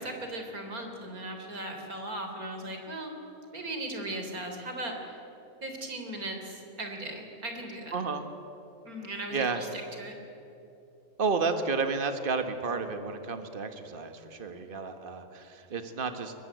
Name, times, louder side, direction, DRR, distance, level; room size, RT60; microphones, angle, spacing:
voice 1, 0.0-3.1 3.5-5.2 5.6-8.0 8.8-10.2, right 1 dB, 75° right, 4 dB, 3.9 m, -38 dB
voice 2, 7.9-8.2 9.3-9.6 11.2-16.3, right 4 dB, 35° right, 7 dB, 1.7 m, -31 dB
22.5 x 21.5 x 9.4 m, 2.9 s
omnidirectional pair, 1.5 m